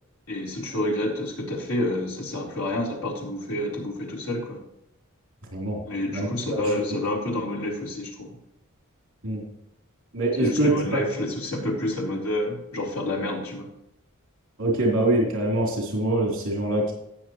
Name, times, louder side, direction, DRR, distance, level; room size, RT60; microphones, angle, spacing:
voice 1, 0.3-4.6 5.8-8.4 10.4-13.7, left 1 dB, 80° left, -2 dB, 3.8 m, -28 dB
voice 2, 10.1-11.0 14.6-16.9, right 1 dB, 65° right, -2 dB, 3.4 m, -24 dB
18.0 x 7.0 x 3.1 m, 0.82 s
head